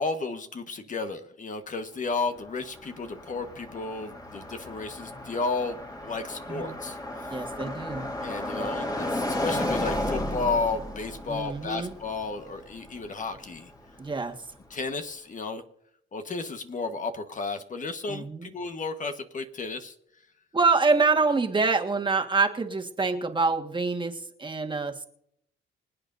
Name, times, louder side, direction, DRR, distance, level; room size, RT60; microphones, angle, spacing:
voice 1, 0.0-5.8 6.0-7.0 8.2-13.7 14.7-15.6 16.1-19.9, left 3 dB, 40° left, 7 dB, 1.3 m, -33 dB
Car passing by, 2.2-14.2, left 1 dB, 20° left, 2.4 m, -34 dB
voice 2, 7.3-8.1 11.3-11.9 14.0-14.3 18.1-18.5 20.5-25.1, right 4 dB, 25° right, 4 dB, 1.6 m, -26 dB
26.0 x 8.7 x 2.7 m, 0.72 s
cardioid pair, 90°, 20 cm